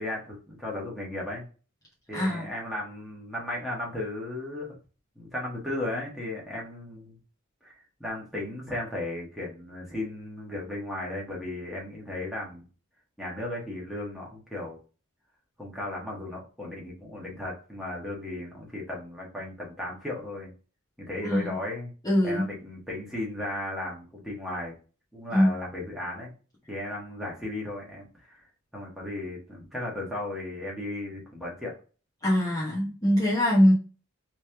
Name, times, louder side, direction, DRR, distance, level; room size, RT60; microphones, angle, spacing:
voice 1, 0.0-1.4 2.1-4.8 5.2-7.2 7.6-12.6 13.2-14.8 15.6-20.5 21.1-21.9 22.2-24.7 25.1-26.3 26.7-28.5 28.7-31.7, left 1 dB, ahead, -3 dB, 1.3 m, -35 dB
voice 2, 2.1-2.5 21.2-21.6 22.0-22.4 25.3-25.5 32.2-33.7, equal, 15° left, -6 dB, 1.0 m, -22 dB
3.3 x 3.1 x 3.3 m, 0.35 s
head